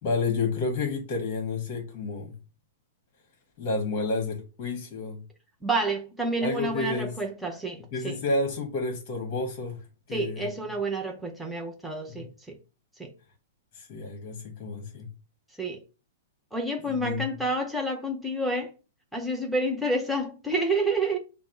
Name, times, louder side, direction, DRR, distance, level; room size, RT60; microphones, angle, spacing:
voice 1, 0.0-2.3 3.6-5.2 6.4-7.1 7.9-9.8 10.1-10.5 13.7-15.1 16.9-17.3, left 3 dB, 30° left, 1.1 m, -30 dB
voice 2, 5.6-8.2 10.1-12.6 13.0-13.1 15.6-15.8 16.5-18.7 19.1-21.2, right 2 dB, ahead, 0.5 m, -29 dB
5.7 x 2.0 x 4.4 m
hypercardioid pair, 165°, 0 cm